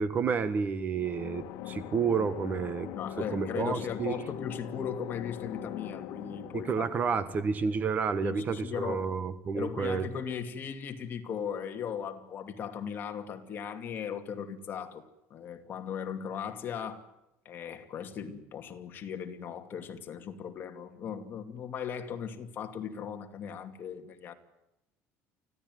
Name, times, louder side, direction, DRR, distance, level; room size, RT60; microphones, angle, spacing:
voice 1, 0.0-2.9 3.3-4.2 6.5-10.0, right 5 dB, 30° right, 1.4 m, -30 dB
sound 1, 0.9-8.6, left 12 dB, 70° left, 1.8 m, -42 dB
voice 2, 2.9-6.9 8.2-9.1 9.5-15.0 15.3-17.1 17.4-24.3, left 7 dB, 35° left, 2.5 m, -38 dB
25.0 x 16.5 x 9.4 m
cardioid pair, 155°, 6 cm